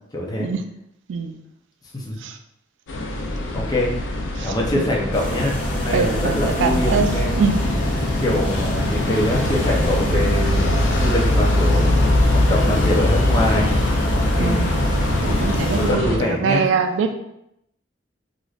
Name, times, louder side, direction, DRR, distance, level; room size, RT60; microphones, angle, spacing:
voice 1, 0.1-0.5 1.9-2.3 3.5-3.9 4.4-7.3 8.2-13.8 14.1-14.6 15.9-16.6, left 1 dB, 20° left, -2 dB, 0.5 m, -24 dB
sound 1, 2.9-16.2, left 2 dB, 80° left, 0.4 m, -22 dB
voice 2, 4.4-4.9 5.9-7.1 7.4-7.6 14.4-14.9 15.2-17.1, right 5 dB, 85° right, 7 dB, 0.3 m, -23 dB
sound 2, 5.1-15.9, equal, 45° left, 0.9 m, -25 dB
3.1 x 2.5 x 2.4 m, 0.81 s
head